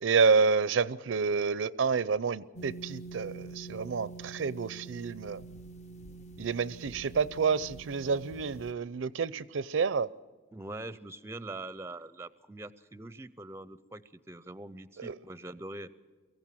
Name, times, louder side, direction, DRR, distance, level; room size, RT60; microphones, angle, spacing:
voice 1, 0.0-5.4 6.4-10.1 15.0-15.2, right 5 dB, 75° right, 0.5 m, -29 dB
sound 1, 2.6-8.7, right 3 dB, 35° left, 0.6 m, -46 dB
voice 2, 10.5-15.9, right 2 dB, 15° right, 0.5 m, -43 dB
23.5 x 15.5 x 7.4 m
head